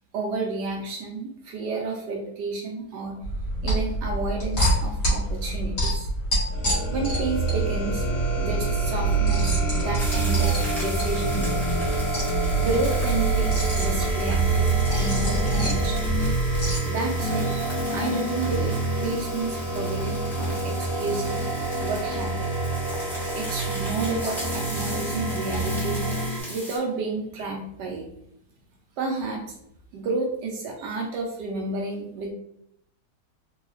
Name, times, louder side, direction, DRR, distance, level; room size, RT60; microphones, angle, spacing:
voice 1, 0.1-3.2 3.6-6.1 6.9-8.0 8.4-11.8 12.6-16.2 16.9-21.4 21.8-22.5 23.3-26.0 26.5-28.0 29.0-29.4 29.9-32.3, right 3 dB, 75° right, 0 dB, 1.0 m, -31 dB
sound 1, 3.2-16.8, equal, 40° left, 1.4 m, -27 dB
sound 2, 6.5-26.4, right 3 dB, 90° left, 1.7 m, -27 dB
sound 3, 10.0-26.8, equal, ahead, 0.6 m, -39 dB
3.8 x 2.3 x 3.0 m, 0.76 s
omnidirectional pair, 2.3 m